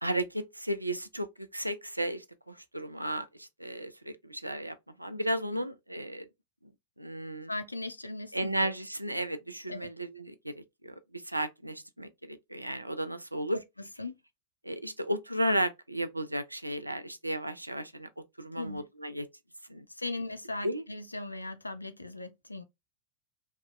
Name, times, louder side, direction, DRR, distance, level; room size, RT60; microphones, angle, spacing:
voice 1, 0.0-6.3 7.0-7.5 8.3-13.6 14.6-18.1 18.4-19.3 19.7-19.9 20.6-20.8, right 1 dB, 85° right, 0.3 m, -34 dB
voice 2, 7.5-8.7 9.7-9.9 13.8-14.2 18.5-18.9 19.9-22.6, left 2 dB, 85° left, 0.3 m, -38 dB
2.7 x 2.2 x 2.3 m
figure-of-eight pair, 90°, 0 cm